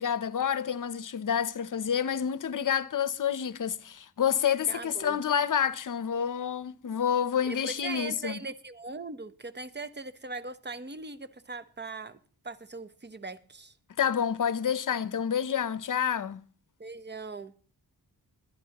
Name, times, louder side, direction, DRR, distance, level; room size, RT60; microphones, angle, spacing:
voice 1, 0.0-8.4 14.0-16.4, left 8 dB, 55° left, 0.8 m, -28 dB
voice 2, 4.7-5.2 7.4-12.2 12.4-13.7 16.8-17.5, right 3 dB, 25° right, 0.9 m, -40 dB
20.5 x 11.0 x 3.0 m
cardioid pair, 70°, 38 cm